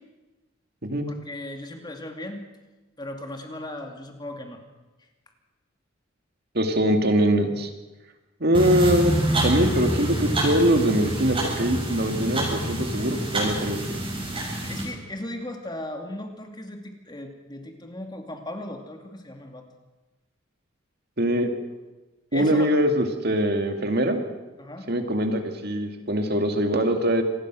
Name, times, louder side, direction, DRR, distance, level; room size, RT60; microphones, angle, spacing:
voice 1, 1.1-2.5 3.0-4.6 14.6-19.6 22.3-22.7 24.6-24.9, left 1 dB, 20° left, 4 dB, 2.5 m, -37 dB
voice 2, 6.5-7.7 8.4-9.1 9.4-14.0 21.2-21.5 22.3-24.2 24.9-27.2, right 1 dB, 55° right, 5 dB, 2.4 m, -22 dB
sound 1, 8.5-14.8, right 1 dB, 30° right, 7.3 m, -27 dB
26.5 x 19.5 x 6.3 m, 1.2 s
head